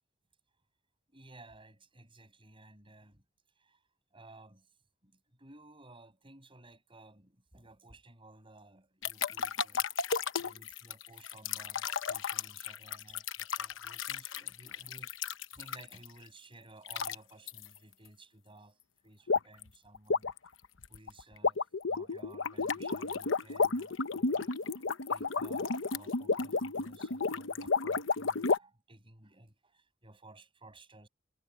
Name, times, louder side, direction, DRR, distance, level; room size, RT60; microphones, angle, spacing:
voice 1, 1.1-3.2 3.6-3.8 4.1-4.7 5.0-9.9 10.4-20.3 20.9-21.6 21.9-31.1, right 2 dB, 30° right, 6.5 m, -56 dB
sound 1, 9.0-16.1 16.9-17.2 17.5-17.7 19.3-19.6 19.9-28.6, left 4 dB, 90° left, 0.9 m, -32 dB
head